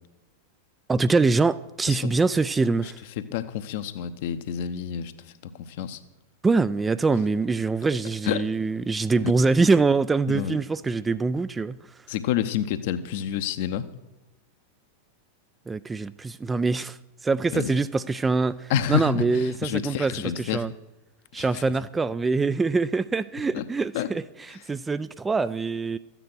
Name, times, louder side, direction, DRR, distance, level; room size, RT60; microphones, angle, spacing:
voice 1, 0.9-3.0 6.4-11.8 15.7-20.7 21.3-26.0, right 4 dB, 15° right, 0.3 m, -24 dB
voice 2, 2.8-5.1 5.4-6.0 8.3-8.4 9.2-9.3 10.3-10.6 12.1-13.9 17.5-17.7 18.7-20.6 21.4-21.6 23.5-23.6 23.9-24.1, left 9 dB, 50° left, 0.8 m, -28 dB
13.5 x 9.1 x 6.2 m
figure-of-eight pair, 90°, 0 cm